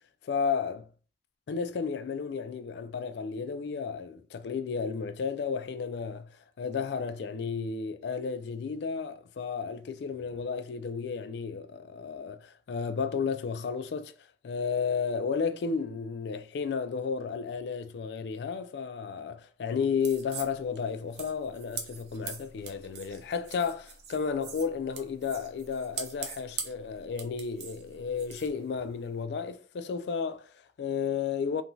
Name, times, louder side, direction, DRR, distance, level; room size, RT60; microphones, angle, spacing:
voice 1, 0.2-0.9 1.5-6.3 6.6-14.1 14.4-31.6, left 5 dB, 65° left, 0.3 m, -33 dB
sound 1, 20.0-29.2, right 6 dB, 65° right, 0.6 m, -43 dB
3.0 x 2.6 x 2.3 m
head